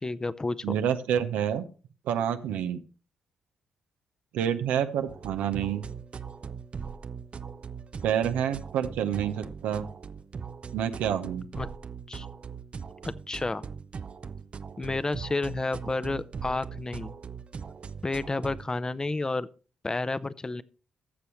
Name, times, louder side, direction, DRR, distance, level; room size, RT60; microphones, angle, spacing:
voice 1, 0.0-0.8 11.6-11.7 12.1-12.3 13.0-13.6 14.8-17.1 18.0-19.5 19.8-20.6, left 3 dB, 25° left, 0.7 m, -31 dB
voice 2, 0.6-1.6 2.1-2.8 4.3-5.9 8.0-9.9 10.7-11.5, right 9 dB, 80° right, 0.8 m, -28 dB
sound 1, 5.1-18.7, right 6 dB, 45° right, 0.6 m, -40 dB
15.0 x 6.9 x 3.1 m
hypercardioid pair, 45°, 3 cm